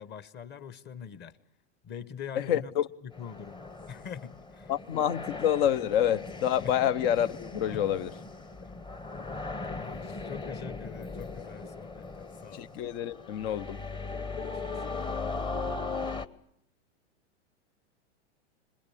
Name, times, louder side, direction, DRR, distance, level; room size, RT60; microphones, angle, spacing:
voice 1, 0.0-1.4 1.8-2.7 3.0-4.7 6.6-6.7 7.7-7.8 9.6-12.1 12.4-12.6 14.4-14.8, left 8 dB, 30° left, 1.3 m, -43 dB
voice 2, 2.3-2.9 4.7-8.1 12.5-13.8, left 10 dB, 55° left, 1.1 m, -28 dB
sound 1, 3.1-16.3, left 3 dB, 15° left, 1.0 m, -38 dB
26.0 x 21.0 x 8.7 m
hypercardioid pair, 115°, 36 cm